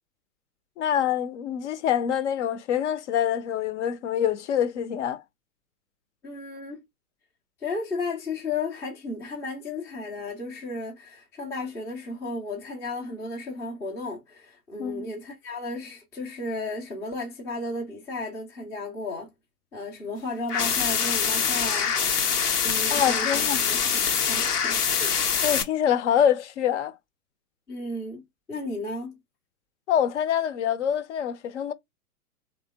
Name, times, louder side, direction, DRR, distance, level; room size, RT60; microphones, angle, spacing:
voice 1, 0.8-5.2 14.8-15.1 22.9-23.6 25.4-26.9 29.9-31.7, left 9 dB, 50° left, 0.6 m, -25 dB
voice 2, 6.2-6.8 7.6-19.4 19.7-22.0 22.6-25.2 27.7-28.2 28.5-29.2, left 2 dB, 5° left, 0.4 m, -34 dB
sound 1, 20.5-25.6, left 7 dB, 85° left, 0.8 m, -24 dB
3.3 x 3.0 x 3.4 m
figure-of-eight pair, 110°, 45 cm